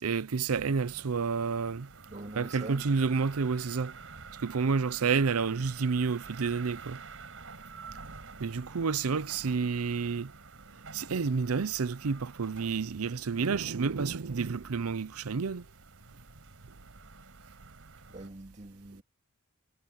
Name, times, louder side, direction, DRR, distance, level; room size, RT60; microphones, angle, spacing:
voice 1, 0.0-1.9 2.3-4.0 4.4-7.0 8.4-10.3 10.9-15.7, right 5 dB, 90° right, 0.6 m, -30 dB
sound 1, 0.5-18.3, right 4 dB, 65° right, 7.5 m, -49 dB
voice 2, 2.1-2.9 18.1-19.0, right 2 dB, 35° right, 2.3 m, -44 dB
head